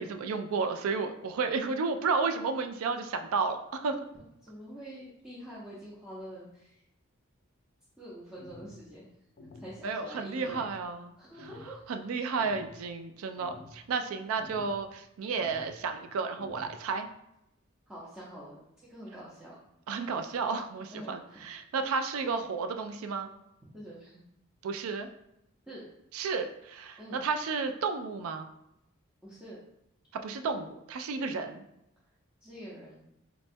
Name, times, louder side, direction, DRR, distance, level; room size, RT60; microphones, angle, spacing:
voice 1, 0.0-4.0 9.8-11.1 11.4-17.1 19.9-23.3 24.6-25.1 26.1-28.5 30.2-31.6, right 4 dB, 90° right, 7 dB, 0.3 m, -32 dB
voice 2, 4.4-6.7 8.0-9.1 9.6-10.6 11.2-11.8 17.9-19.5 20.9-21.4 23.7-24.2 25.7-25.8 27.0-27.2 29.2-29.6 31.3-31.4 32.4-33.0, right 1 dB, 5° right, -10 dB, 0.5 m, -46 dB
sound 1, 8.4-8.8 9.4-9.8 10.4-10.8 11.4-11.8 12.4-12.8 13.4-13.8 14.4-14.8 15.4-15.8 16.4-16.8, left 2 dB, 45° left, 0.4 m, -49 dB
4.1 x 2.2 x 2.6 m, 0.83 s
head